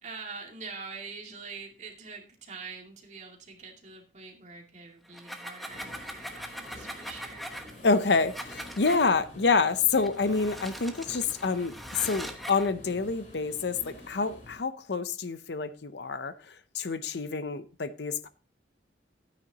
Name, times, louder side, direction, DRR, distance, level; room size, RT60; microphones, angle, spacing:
voice 1, 0.0-7.5, right 4 dB, 40° right, 2.4 m, -44 dB
sound 1, 5.1-9.1 9.9-12.7, equal, ahead, 1.1 m, -42 dB
sound 2, 5.7-14.6, left 1 dB, 45° left, 4.1 m, -49 dB
voice 2, 7.8-18.3, left 4 dB, 65° left, 0.7 m, -28 dB
13.0 x 9.2 x 2.9 m
head